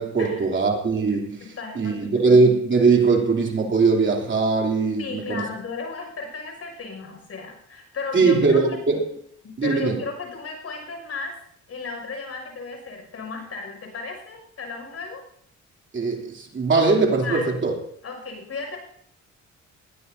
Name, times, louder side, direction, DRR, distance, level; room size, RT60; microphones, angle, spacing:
voice 1, 0.0-1.4 1.7-5.5 8.1-9.0 9.6-10.0 15.9-17.8, right 4 dB, 40° right, 3.1 m, -20 dB
voice 2, 1.4-2.2 5.0-8.6 9.4-11.3 11.7-15.2 17.2-17.5 18.0-18.8, left 4 dB, 50° left, 6.0 m, -34 dB
20.5 x 15.5 x 2.8 m
cardioid pair, 90°, 30 cm